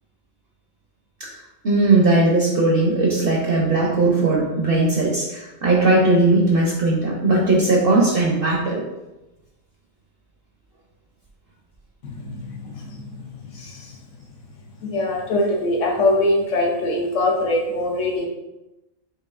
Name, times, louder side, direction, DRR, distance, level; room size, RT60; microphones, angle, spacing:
voice 1, 1.6-8.8, right 2 dB, 55° right, -3 dB, 0.7 m, -18 dB
voice 2, 12.0-13.9 14.8-18.3, left 1 dB, 70° left, 0 dB, 1.0 m, -23 dB
4.8 x 2.6 x 2.4 m, 0.99 s
omnidirectional pair, 1.4 m